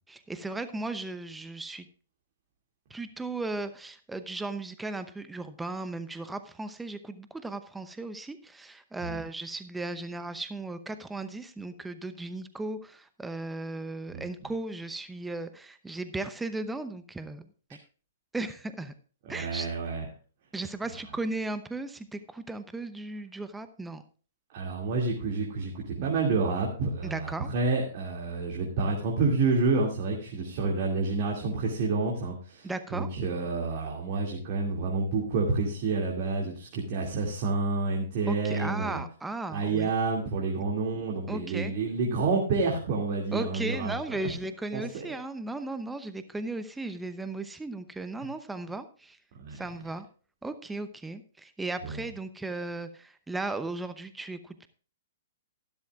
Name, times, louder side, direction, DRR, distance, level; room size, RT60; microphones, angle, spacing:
voice 1, 0.1-1.9 2.9-17.4 18.3-18.9 19.3-19.7 20.5-24.0 27.0-27.5 32.6-33.1 38.3-39.9 41.3-41.7 43.3-49.2 49.5-50.1 50.4-54.7, right 2 dB, 5° right, 11 dB, 0.8 m, -36 dB
voice 2, 19.3-20.0 24.5-39.0 39.5-44.2 44.7-45.0 49.4-49.6 51.8-52.0, right 3 dB, 45° right, -1 dB, 2.5 m, -29 dB
14.0 x 12.0 x 2.4 m, 0.39 s
figure-of-eight pair, 115°, 0 cm